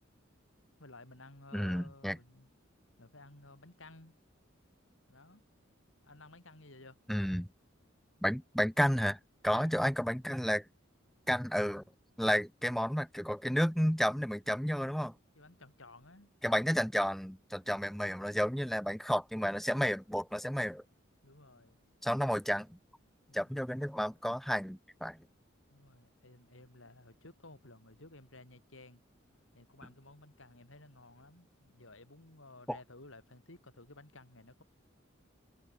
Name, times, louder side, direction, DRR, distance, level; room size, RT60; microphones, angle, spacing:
voice 1, 0.8-2.5 3.0-4.2 5.1-5.4 6.0-7.0 9.5-9.8 15.3-16.3 21.2-21.8 23.3-23.6 25.7-29.0 29.5-34.6, left 2 dB, 75° left, 4.6 m, -55 dB
voice 2, 1.5-2.2 7.1-7.5 8.2-10.6 11.3-11.8 12.2-15.1 16.4-20.8 22.0-22.8 23.3-25.2 32.7-32.8, equal, ahead, 0.9 m, -31 dB
head